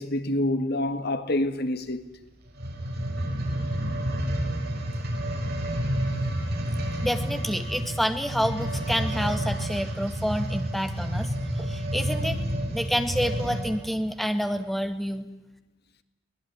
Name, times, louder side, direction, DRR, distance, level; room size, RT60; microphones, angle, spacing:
voice 1, 0.0-2.0, left 1 dB, 55° left, 1.9 m, -27 dB
sound 1, 2.5-13.8 14.4-14.5, equal, 55° right, 6.2 m, -29 dB
voice 2, 7.0-12.4 12.7-15.3, equal, ahead, 2.2 m, -28 dB
23.5 x 20.0 x 9.8 m
head